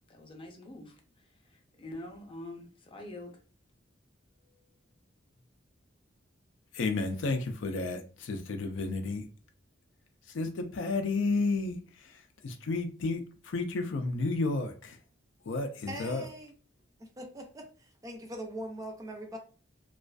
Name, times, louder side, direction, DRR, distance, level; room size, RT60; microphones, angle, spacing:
voice 1, 0.1-1.0 1.4-3.3, left 1 dB, 30° left, 0.6 m, -45 dB
voice 2, 6.7-9.2 10.3-15.0 15.5-16.3, left 3 dB, 80° left, 0.4 m, -32 dB
voice 3, 15.9-16.5 17.2-19.4, right 1 dB, 20° right, 0.4 m, -41 dB
2.4 x 2.3 x 2.2 m
head